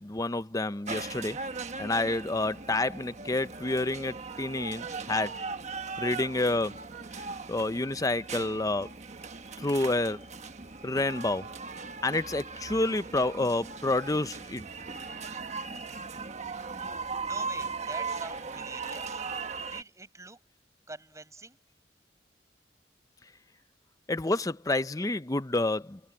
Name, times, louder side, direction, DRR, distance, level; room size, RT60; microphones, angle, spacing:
voice 1, 0.0-5.4 6.0-6.9 7.2-8.9 9.6-10.3 10.8-11.5 12.0-14.6 24.1-26.1, left 2 dB, 20° left, 0.7 m, -29 dB
sound 1, 0.9-19.8, right 4 dB, 40° right, 1.3 m, -38 dB
voice 2, 17.2-19.2 19.7-20.4 20.9-21.6, right 2 dB, 20° right, 7.2 m, -45 dB
head